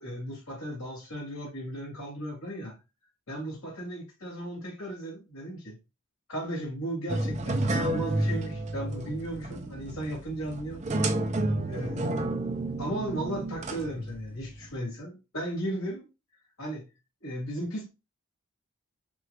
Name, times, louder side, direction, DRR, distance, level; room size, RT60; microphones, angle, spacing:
voice 1, 0.0-2.7 3.3-5.8 6.3-10.8 11.7-12.3 12.8-16.1 16.6-16.9 17.2-17.9, right 1 dB, 70° left, 2.3 m, -35 dB
sound 1, 7.1-14.7, right 1 dB, 30° right, 0.6 m, -31 dB
6.1 x 2.9 x 2.3 m
head